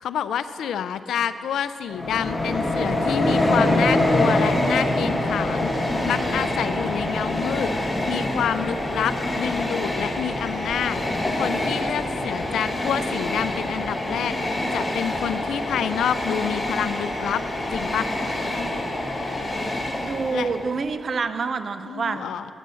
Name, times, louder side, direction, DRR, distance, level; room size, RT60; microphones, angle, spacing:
voice 1, 0.0-5.7 6.0-7.7 8.1-11.0 11.3-14.3 14.7-17.4 17.7-18.1 20.3-20.5 21.9-22.5, left 9 dB, 90° left, 13 dB, 0.4 m, -28 dB
Train, 1.9-20.8, left 1 dB, 25° left, 1.6 m, -25 dB
voice 2, 20.0-22.3, right 4 dB, 55° right, 10 dB, 0.6 m, -27 dB
11.0 x 7.5 x 6.8 m, 2.5 s
cardioid pair, 65°, 0 cm